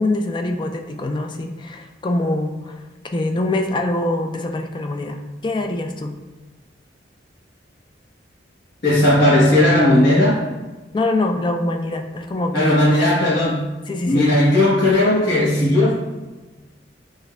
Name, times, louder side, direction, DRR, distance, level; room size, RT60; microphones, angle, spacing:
voice 1, 0.0-2.8 3.1-6.1 10.9-12.9 13.9-14.3, left 2 dB, 25° left, 4 dB, 0.3 m, -24 dB
voice 2, 8.8-10.5 12.5-13.7 14.1-15.9, left 1 dB, 75° left, -10 dB, 1.1 m, -16 dB
7.4 x 2.5 x 2.2 m, 1.2 s
head